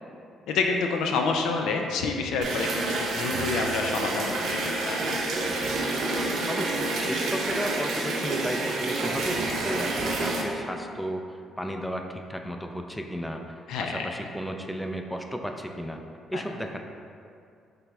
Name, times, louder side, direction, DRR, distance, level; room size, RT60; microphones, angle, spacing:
voice 1, 0.5-4.6 4.8-5.2 13.7-14.1 16.3-16.4, left 4 dB, 80° left, 3 dB, 0.3 m, -28 dB
sound 1, 2.4-10.4, right 2 dB, 70° right, 0.6 m, -28 dB
voice 2, 6.5-16.0 16.3-16.8, equal, 5° left, 4 dB, 0.4 m, -34 dB
5.8 x 3.3 x 2.3 m, 2.5 s
supercardioid pair, 65°, 0 cm